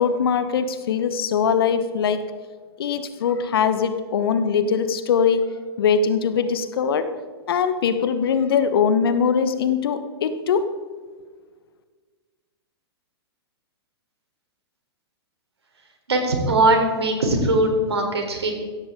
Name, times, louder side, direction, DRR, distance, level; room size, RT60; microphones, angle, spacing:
voice 1, 0.0-2.2 2.8-5.4 5.8-7.1 7.5-10.7, left 6 dB, 60° left, 10 dB, 1.2 m, -21 dB
voice 2, 16.1-18.5, right 2 dB, 75° right, 3 dB, 3.7 m, -20 dB
16.5 x 14.5 x 3.8 m, 1.5 s
figure-of-eight pair, 110°, 14 cm